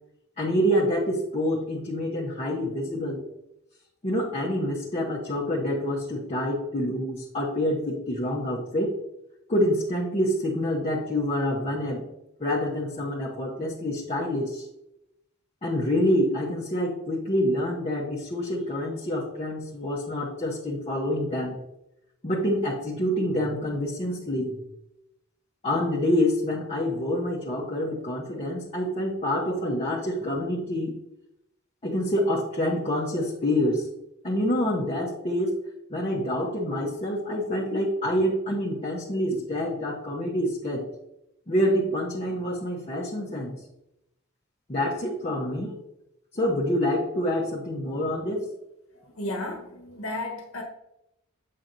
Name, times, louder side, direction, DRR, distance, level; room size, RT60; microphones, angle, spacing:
voice 1, 0.4-3.2 4.0-8.9 9.5-12.0 12.4-14.7 15.6-21.6 22.2-24.6 25.6-30.9 31.8-33.9 34.2-35.5 35.9-40.9 41.5-43.6 44.7-45.8 46.3-48.5, equal, 30° left, -2 dB, 0.9 m, -27 dB
voice 2, 48.9-50.6, left 1 dB, 85° left, 1 dB, 1.1 m, -34 dB
7.5 x 5.8 x 2.6 m, 0.85 s
head